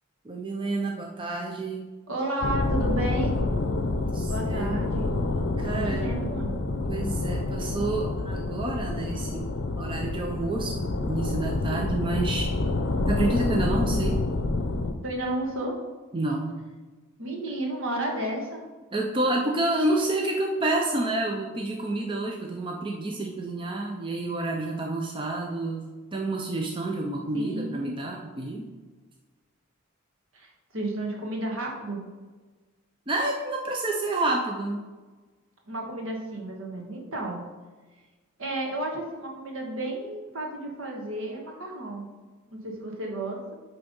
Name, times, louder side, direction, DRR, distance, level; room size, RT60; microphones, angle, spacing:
voice 1, 0.2-1.9 3.9-5.1 5.6-6.0 6.9-9.5 9.8-12.5 13.1-14.2 16.1-16.6 18.9-28.7 33.1-34.8, right 2 dB, 25° right, 0 dB, 0.5 m, -29 dB
voice 2, 2.1-3.4 4.2-5.2 5.7-6.5 15.0-15.7 17.2-18.6 27.3-28.0 30.3-32.0 35.7-37.4 38.4-42.1 42.5-43.6, right 1 dB, 65° right, 0 dB, 1.5 m, -32 dB
sound 1, 2.4-14.9, left 2 dB, 60° left, 0.6 m, -28 dB
8.9 x 3.4 x 5.3 m, 1.3 s
head